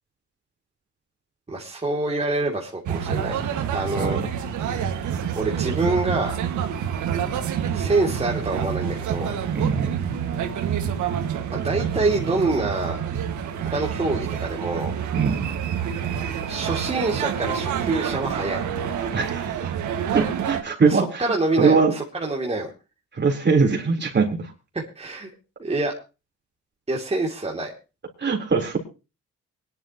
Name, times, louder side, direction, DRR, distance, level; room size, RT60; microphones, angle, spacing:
voice 1, 1.5-3.4 3.7-4.2 5.4-6.3 7.7-9.3 11.5-13.0 13.6-15.0 16.4-18.6 20.9-22.7 24.7-25.3 25.6-25.9 26.9-27.7, right 2 dB, 20° right, -3 dB, 2.8 m, -26 dB
sound 1, 2.8-20.6, right 8 dB, 75° right, 1.8 m, -27 dB
voice 2, 9.5-10.0 15.2-15.5 19.1-19.5 20.1-21.3 21.6-21.9 23.1-24.5 28.2-28.8, right 4 dB, 35° right, 1 dB, 3.9 m, -21 dB
23.5 x 11.0 x 3.0 m, 0.31 s
cardioid pair, 90°, 30 cm